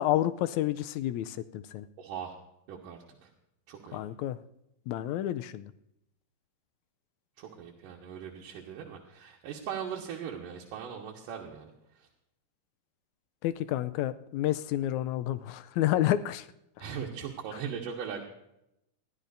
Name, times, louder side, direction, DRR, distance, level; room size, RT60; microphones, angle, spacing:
voice 1, 0.0-1.8 3.9-4.4 4.9-5.7 13.4-16.4 16.8-16.9, left 13 dB, 85° left, 12 dB, 1.7 m, -30 dB
voice 2, 2.0-2.3 2.7-3.3 3.7-4.0 7.4-11.7 12.0-12.1 16.8-18.3, right 7 dB, 75° right, -2 dB, 2.8 m, -39 dB
22.0 x 14.0 x 2.6 m, 0.82 s
omnidirectional pair, 3.9 m